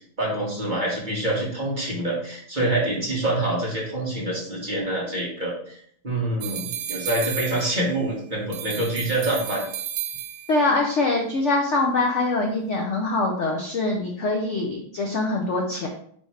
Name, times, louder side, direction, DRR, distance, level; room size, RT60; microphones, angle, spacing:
voice 1, 0.2-9.6, right 1 dB, 25° right, -5 dB, 1.9 m, -26 dB
sound 1, 6.4-8.1 8.5-10.7, right 10 dB, 80° right, 1.5 m, -33 dB
voice 2, 10.5-15.9, left 2 dB, 55° left, 1 dB, 0.8 m, -23 dB
9.5 x 3.5 x 3.3 m, 0.62 s
omnidirectional pair, 2.1 m